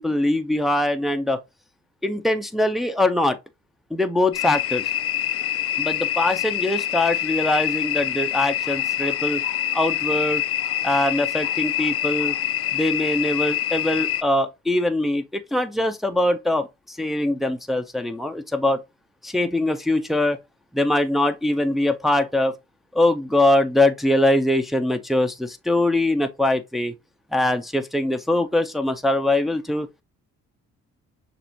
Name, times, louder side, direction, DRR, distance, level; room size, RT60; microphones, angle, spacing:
voice 1, 0.0-1.4 2.0-3.4 3.9-4.9 5.8-9.4 9.7-10.4 10.8-12.4 12.7-18.8 19.2-20.4 20.7-22.5 22.9-26.9 27.3-29.9, left 1 dB, ahead, 0.6 m, -22 dB
sound 1, 4.3-14.2, left 10 dB, 50° left, 0.5 m, -25 dB
6.5 x 2.6 x 2.9 m
cardioid pair, 90°, 30 cm